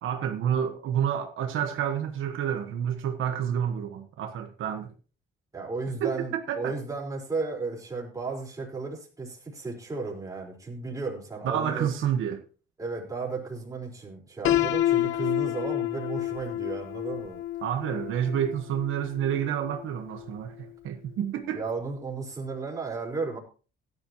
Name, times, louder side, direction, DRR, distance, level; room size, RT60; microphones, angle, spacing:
voice 1, 0.0-4.9 6.0-6.7 11.4-12.4 17.6-21.6, right 9 dB, 70° right, 1.4 m, -29 dB
voice 2, 5.5-11.9 12.8-17.4 21.5-23.4, right 4 dB, 15° right, 4.7 m, -34 dB
Piano, 14.4-20.3, left 13 dB, 70° left, 1.1 m, -29 dB
17.0 x 11.5 x 3.0 m
cardioid pair, 170°, 21 cm